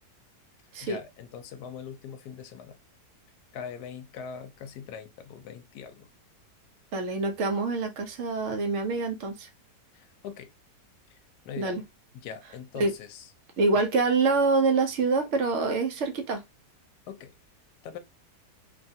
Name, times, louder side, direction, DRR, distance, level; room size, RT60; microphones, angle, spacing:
voice 1, 0.8-2.8 3.5-6.1 9.9-10.5 11.1-11.2 11.5-11.8 12.1-13.3 17.1-17.3 17.8-18.0, left 7 dB, 75° left, 1.1 m, -41 dB
voice 2, 6.9-9.5 11.6-11.8 12.8-12.9 13.6-16.4, right 3 dB, 65° right, 0.7 m, -26 dB
3.0 x 2.3 x 2.6 m
omnidirectional pair, 1.8 m